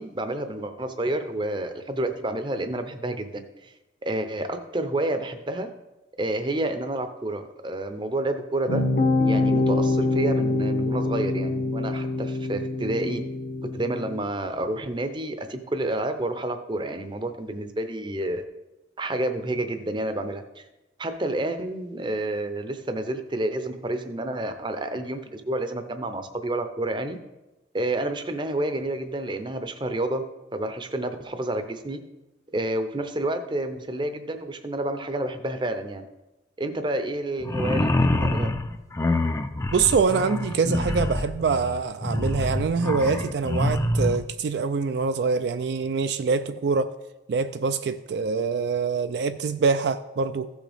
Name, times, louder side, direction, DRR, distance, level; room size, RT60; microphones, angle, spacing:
voice 1, 0.0-3.7 4.0-5.7 6.2-8.8 9.2-13.2 13.7-18.4 19.0-20.6 21.0-27.2 27.7-30.2 30.5-32.0 32.5-36.0 36.6-38.5, right 1 dB, 25° right, 0.6 m, -29 dB
sound 1, 8.7-14.2, left 2 dB, 45° left, 0.8 m, -25 dB
sound 2, 37.4-44.2, left 1 dB, 15° left, 0.4 m, -26 dB
voice 2, 39.7-46.9 47.3-50.5, right 5 dB, 60° right, 0.3 m, -25 dB
15.0 x 6.2 x 3.4 m
head